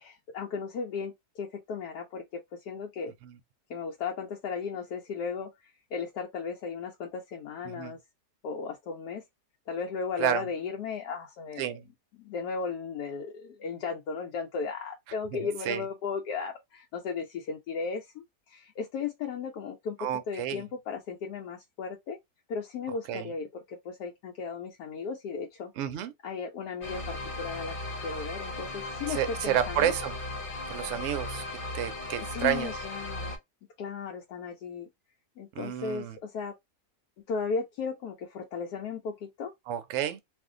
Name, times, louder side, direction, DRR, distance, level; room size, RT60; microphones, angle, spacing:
voice 1, 0.0-3.1 3.7-8.0 8.4-9.2 9.7-11.8 12.2-22.2 22.5-25.7 26.2-27.8 28.0-29.9 32.2-33.4 33.8-34.9 35.4-36.5 37.3-39.5, left 5 dB, 85° left, 1.1 m, -36 dB
voice 2, 15.3-15.8 20.0-20.6 23.1-23.3 25.8-26.1 29.1-30.2 30.7-31.4 31.7-32.7 35.5-36.2 39.7-40.2, right 11 dB, 65° right, 0.7 m, -30 dB
sound 1, 26.8-33.4, left 2 dB, 40° left, 0.9 m, -37 dB
2.6 x 2.4 x 3.6 m
omnidirectional pair, 1.7 m